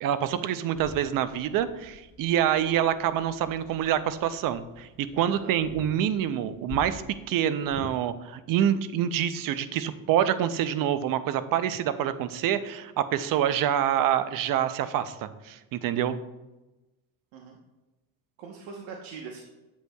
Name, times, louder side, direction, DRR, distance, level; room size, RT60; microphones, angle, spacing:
voice 1, 0.0-16.2, right 10 dB, 45° right, 13 dB, 0.6 m, -26 dB
sound 1, 0.7-7.9, left 3 dB, 45° left, 1.8 m, -46 dB
voice 2, 18.4-19.4, right 5 dB, 70° right, 1 dB, 1.1 m, -42 dB
8.2 x 8.1 x 2.3 m, 1.0 s
cardioid pair, 120°, 48 cm